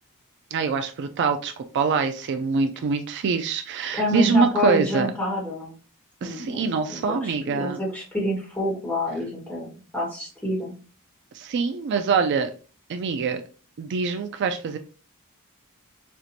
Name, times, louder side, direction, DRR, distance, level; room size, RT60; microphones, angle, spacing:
voice 1, 0.5-5.1 6.2-7.8 11.3-12.5 12.9-13.4 13.8-14.8, right 5 dB, 50° right, 7 dB, 0.3 m, -24 dB
voice 2, 3.9-5.7 6.2-10.8, left 1 dB, 5° left, -4 dB, 1.4 m, -28 dB
4.4 x 2.5 x 2.6 m, 0.37 s
head